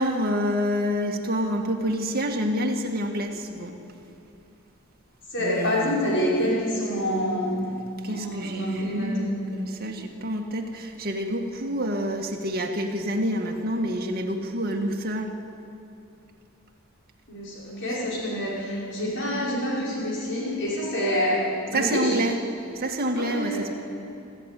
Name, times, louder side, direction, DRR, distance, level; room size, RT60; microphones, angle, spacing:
voice 1, 0.0-3.7 5.4-5.9 8.0-15.3 21.7-22.4 22.8-23.7, equal, 45° right, 2 dB, 2.0 m, -27 dB
voice 2, 5.3-7.7 8.1-9.4 17.3-22.2 23.1-23.7, equal, 60° left, -5 dB, 5.4 m, -27 dB
27.0 x 13.5 x 9.2 m, 2.6 s
head